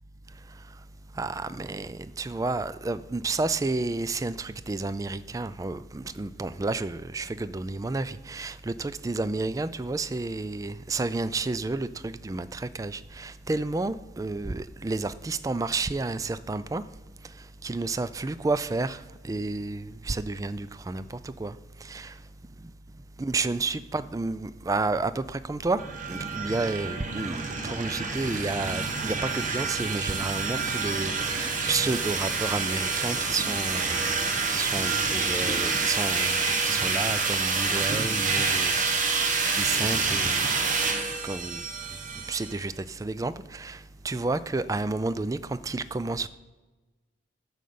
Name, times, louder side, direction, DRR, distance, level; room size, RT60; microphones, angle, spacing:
voice 1, 1.2-16.8 17.6-19.0 19.2-21.0 21.4-21.5 21.9-22.1 23.2-25.8 26.1-34.1 34.5-40.4 41.2-41.6 42.3-42.7 43.0-43.8 44.0-45.4 45.6-46.3, right 3 dB, 20° right, 0.3 m, -31 dB
sound 1, 25.8-42.6, right 4 dB, 45° right, 1.1 m, -28 dB
9.2 x 6.4 x 6.9 m
head